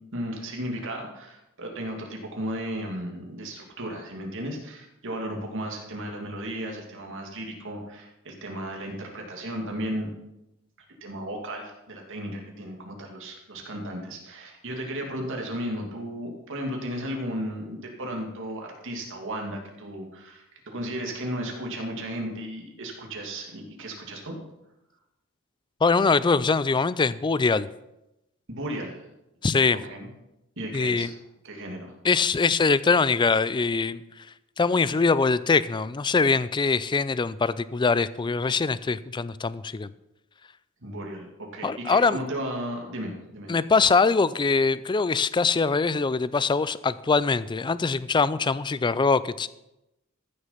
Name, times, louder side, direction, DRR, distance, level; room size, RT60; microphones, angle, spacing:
voice 1, 0.1-10.1 11.0-24.3 28.5-29.0 29.9-30.1 30.6-31.1 31.4-31.9 40.8-43.5, right 1 dB, 60° right, 1 dB, 2.4 m, -34 dB
voice 2, 25.8-27.7 29.4-29.8 30.7-31.1 32.0-34.0 34.6-39.9 41.6-42.2 43.5-49.5, left 4 dB, 20° left, 17 dB, 0.4 m, -23 dB
14.0 x 6.7 x 5.8 m, 0.92 s
head